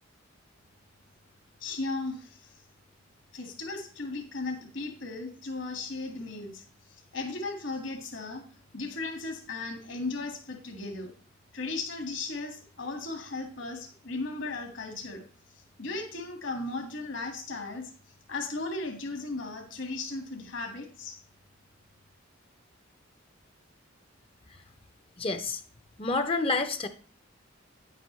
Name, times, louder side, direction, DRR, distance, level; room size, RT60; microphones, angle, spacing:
voice 1, 1.6-2.5 3.3-6.6 6.9-8.4 8.7-11.1 11.5-15.2 15.8-17.9 18.3-21.2, left 3 dB, 65° left, 3 dB, 1.9 m, -36 dB
voice 2, 25.2-25.6 26.0-26.9, left 3 dB, 30° left, 9 dB, 0.6 m, -28 dB
9.8 x 8.1 x 3.1 m, 0.41 s
head